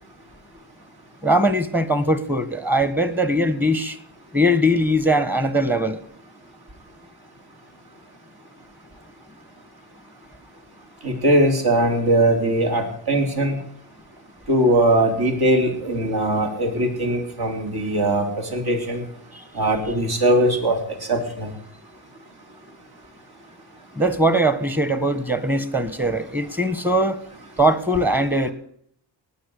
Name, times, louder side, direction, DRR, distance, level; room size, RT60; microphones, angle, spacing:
voice 1, 1.2-4.0 4.3-6.0 19.3-19.4 23.9-27.2 27.6-28.5, right 1 dB, 5° right, 13 dB, 1.4 m, -20 dB
voice 2, 11.0-13.6 14.5-19.0 19.5-20.8 21.1-21.5, right 1 dB, 55° right, 3 dB, 4.1 m, -20 dB
18.5 x 7.1 x 8.3 m, 0.66 s
wide cardioid pair, 125°, 44 cm